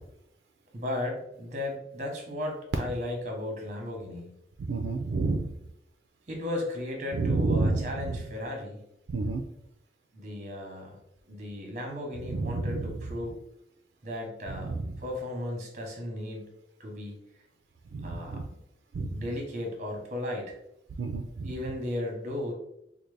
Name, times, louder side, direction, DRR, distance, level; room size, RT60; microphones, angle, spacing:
voice 1, 0.7-4.3 6.3-8.8 10.1-11.0 11.3-13.4 14.0-16.5 16.8-17.1 18.0-18.4 19.0-20.6 21.4-22.5, left 1 dB, 45° right, 1 dB, 0.9 m, -35 dB
voice 2, 4.7-5.5 7.1-8.2 9.1-9.5 12.3-12.9 14.5-15.0 17.9-18.5 18.9-19.3 21.0-21.5, right 3 dB, 75° right, 4 dB, 0.3 m, -30 dB
3.9 x 2.0 x 3.2 m, 0.78 s
head